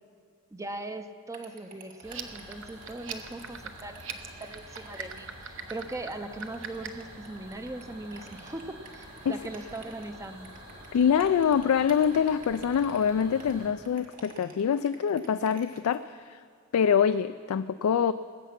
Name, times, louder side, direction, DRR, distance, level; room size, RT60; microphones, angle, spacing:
voice 1, 0.5-4.0 4.4-10.5, right 2 dB, 15° right, 8 dB, 0.5 m, -40 dB
sound 1, 1.3-16.0, right 4 dB, 40° right, 1.8 m, -51 dB
sound 2, 2.0-7.1, right 8 dB, 60° right, 0.8 m, -40 dB
sound 3, 2.0-13.7, right 1 dB, 85° right, 4.3 m, -48 dB
voice 2, 10.9-16.4 16.7-18.1, left 7 dB, 80° left, 11 dB, 0.3 m, -25 dB
20.0 x 8.3 x 5.9 m, 2.2 s
head